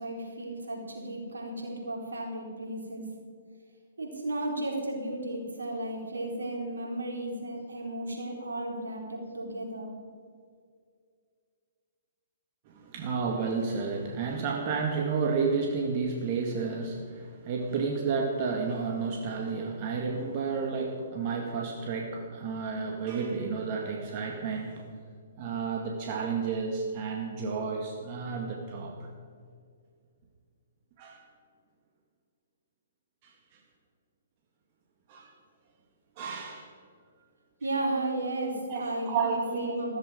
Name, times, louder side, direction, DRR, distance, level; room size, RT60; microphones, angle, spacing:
voice 1, 0.0-3.1 4.0-9.9 37.6-40.0, right 1 dB, 80° right, 0 dB, 4.1 m, -34 dB
voice 2, 12.7-24.9 25.4-29.1 31.0-31.2 33.2-33.3 35.1-35.3 36.2-36.7 38.7-39.8, right 5 dB, 40° right, 1 dB, 2.0 m, -31 dB
14.5 x 14.5 x 5.2 m, 2.1 s
figure-of-eight pair, 125°, 0 cm